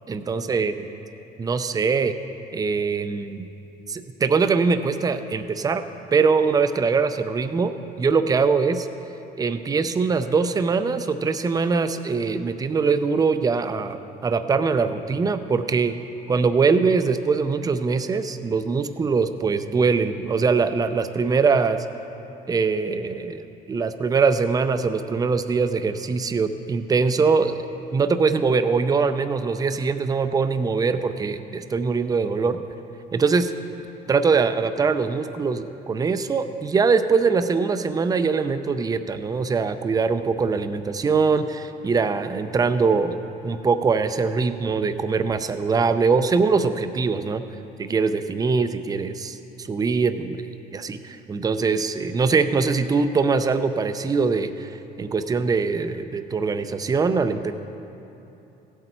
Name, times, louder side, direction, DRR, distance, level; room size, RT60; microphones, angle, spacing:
voice 1, 0.1-0.7 1.4-2.1 2.5-3.5 3.9-5.8 6.1-7.7 8.0-8.9 9.4-16.0 16.3-21.8 22.5-27.6 27.9-32.6 33.1-33.5 34.1-43.1 43.4-47.4 47.8-50.5 50.7-57.5, right 4 dB, 20° right, 10 dB, 0.5 m, -22 dB
16.0 x 8.0 x 4.4 m, 2.9 s
cardioid pair, 110°, 17 cm